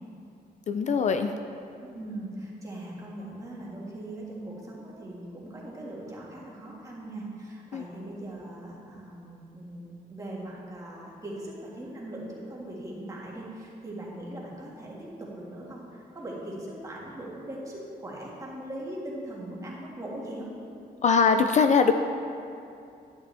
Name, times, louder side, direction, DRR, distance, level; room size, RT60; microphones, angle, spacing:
voice 1, 0.7-1.4 7.7-7.9 21.0-21.9, left 5 dB, 45° left, 7 dB, 0.4 m, -22 dB
voice 2, 1.9-20.5, right 1 dB, 20° right, -5 dB, 1.8 m, -40 dB
10.5 x 10.0 x 3.4 m, 2.6 s
wide cardioid pair, 160°, 17 cm